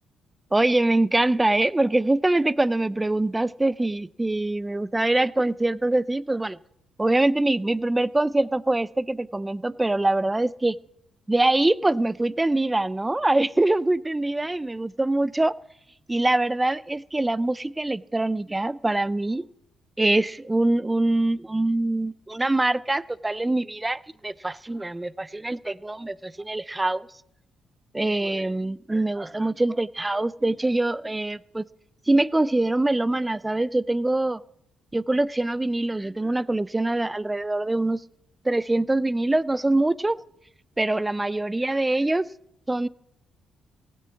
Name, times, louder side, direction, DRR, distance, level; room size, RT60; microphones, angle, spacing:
voice 1, 0.5-6.6 7.0-10.8 11.3-15.5 16.1-19.5 20.0-27.1 27.9-31.6 32.1-34.4 34.9-38.0 38.4-40.2 40.8-42.3 42.7-42.9, right 2 dB, 15° right, 20 dB, 0.4 m, -24 dB
16.5 x 7.7 x 8.3 m, 0.79 s
cardioid pair, 90°, 0 cm